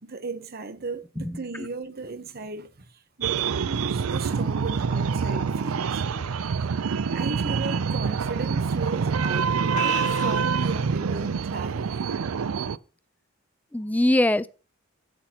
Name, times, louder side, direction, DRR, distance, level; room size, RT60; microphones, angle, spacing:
voice 1, 0.0-2.7 3.2-6.0 7.1-12.1, right 3 dB, 50° right, 1.0 m, -36 dB
voice 2, 1.2-1.7 13.7-14.5, left 1 dB, 10° left, 0.4 m, -23 dB
sound 1, 3.2-12.8, right 6 dB, 90° right, 0.5 m, -26 dB
sound 2, 3.6-6.7 7.1-7.4 7.8-7.9 8.7-8.9 9.2-9.3 9.7-10.7, left 6 dB, 35° left, 0.7 m, -40 dB
16.5 x 6.0 x 2.9 m
head